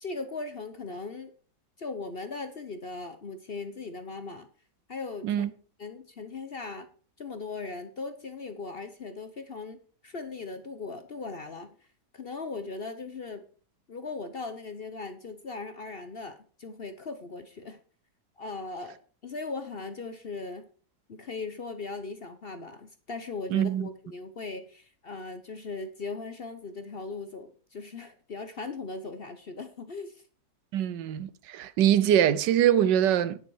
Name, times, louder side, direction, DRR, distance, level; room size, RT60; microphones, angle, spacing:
voice 1, 0.0-1.3 1.8-4.5 4.9-5.5 5.8-6.9 7.2-11.8 12.1-13.4 13.9-17.8 18.4-20.7 21.1-30.2, left 3 dB, 45° left, 0.8 m, -38 dB
voice 2, 23.5-23.9 30.7-33.4, right 10 dB, 90° right, 1.4 m, -23 dB
9.8 x 8.7 x 4.7 m
omnidirectional pair, 1.9 m